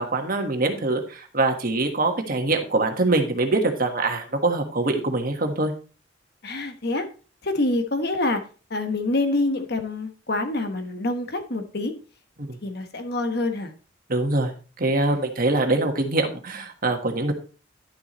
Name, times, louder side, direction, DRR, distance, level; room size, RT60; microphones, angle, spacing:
voice 1, 0.0-5.7 12.4-12.6 14.1-14.5 14.8-17.3, right 2 dB, 45° right, 5 dB, 1.5 m, -24 dB
voice 2, 6.4-7.1 7.4-8.4 8.7-11.9 12.6-13.7, left 2 dB, 55° left, 6 dB, 1.3 m, -26 dB
11.5 x 7.1 x 3.1 m, 0.35 s
head